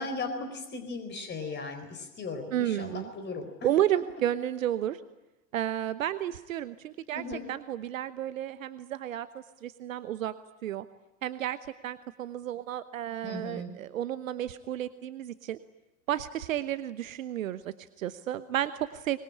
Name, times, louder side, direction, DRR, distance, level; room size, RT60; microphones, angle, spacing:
voice 1, 0.0-4.0 7.1-7.4 13.2-13.7, left 3 dB, 25° left, 6 dB, 4.3 m, -37 dB
voice 2, 2.5-3.1 3.6-5.0 5.5-7.2 7.5-10.3 10.6-10.9 11.2-11.6 11.8-15.6 16.1-19.2, right 12 dB, 65° right, 13 dB, 1.1 m, -32 dB
25.0 x 22.0 x 9.9 m, 1.0 s
figure-of-eight pair, 85°, 43 cm